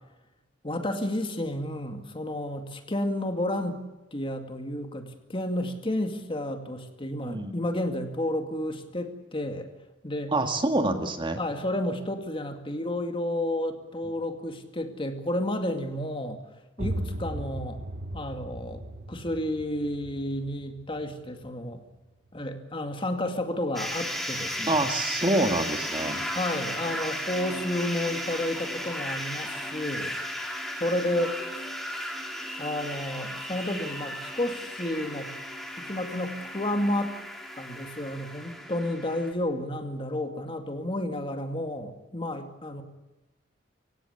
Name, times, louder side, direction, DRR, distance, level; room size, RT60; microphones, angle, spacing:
voice 1, 0.6-3.8 4.1-9.7 10.0-10.3 10.8-10.9 11.4-16.4 16.8-17.8 18.1-21.8 22.3-24.8 26.3-30.2 30.8-31.4 32.6-35.3 35.8-37.1 37.6-42.8, left 1 dB, 30° left, 6 dB, 2.3 m, -31 dB
voice 2, 7.2-7.5 10.3-11.4 24.7-26.2, right 2 dB, 25° right, 6 dB, 1.9 m, -26 dB
sound 1, 16.8-22.4, right 1 dB, 50° right, 1.3 m, -37 dB
sound 2, 23.8-39.3, equal, ahead, 3.6 m, -35 dB
25.0 x 17.0 x 9.8 m, 1.1 s
head